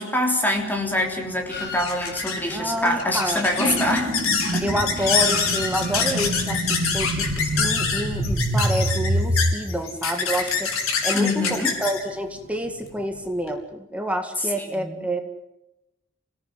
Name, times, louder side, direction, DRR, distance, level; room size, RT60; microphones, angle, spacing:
voice 1, 0.0-4.1 4.5-4.6 11.1-11.7 14.4-15.1, left 1 dB, 10° left, 2 dB, 3.5 m, -25 dB
sound 1, 0.6-13.5, left 5 dB, 80° left, 4.5 m, -27 dB
sound 2, 1.5-8.5, left 2 dB, 50° left, 5.6 m, -38 dB
voice 2, 2.5-3.4 3.7-3.8 4.6-10.7 11.0-15.2, equal, 5° right, 5 dB, 2.1 m, -28 dB
sound 3, 3.6-9.6, right 1 dB, 45° right, 3.1 m, -26 dB
27.0 x 18.0 x 8.1 m, 0.91 s
head